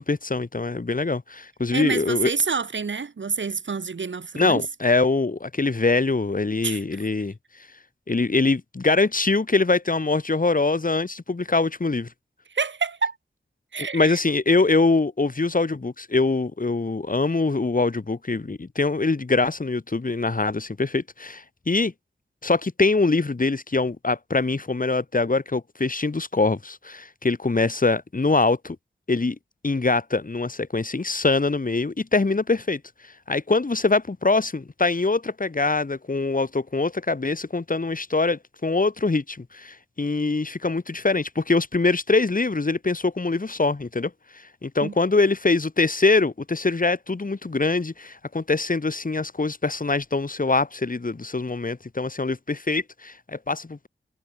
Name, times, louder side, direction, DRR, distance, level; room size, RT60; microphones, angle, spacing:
voice 1, 0.0-2.3 4.4-7.3 8.1-12.1 13.9-21.9 22.4-28.8 29.1-29.4 29.6-32.8 33.3-53.9, left 3 dB, 45° left, 5.9 m, -23 dB
voice 2, 1.7-4.6 6.6-6.8 12.5-13.2 13.7-14.2 44.8-44.9, right 5 dB, 75° right, 2.9 m, -27 dB
wide cardioid pair, 95°, 20 cm